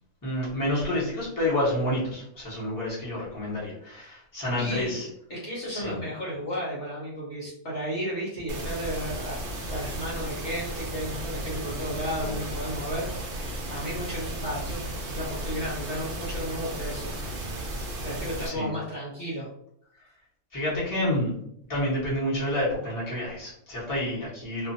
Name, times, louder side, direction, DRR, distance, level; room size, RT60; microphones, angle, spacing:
voice 1, 0.2-5.1 5.7-6.0 12.2-12.4 18.4-18.7 20.5-21.3 21.7-24.7, left 1 dB, 15° left, -8 dB, 1.0 m, -29 dB
voice 2, 4.6-5.0 5.3-9.4 9.7-14.8 15.1-17.1 18.0-19.5, equal, 55° left, -6 dB, 1.1 m, -33 dB
sound 1, 8.5-18.5, right 1 dB, 55° right, 0.6 m, -34 dB
2.5 x 2.5 x 2.6 m, 0.72 s
omnidirectional pair, 1.5 m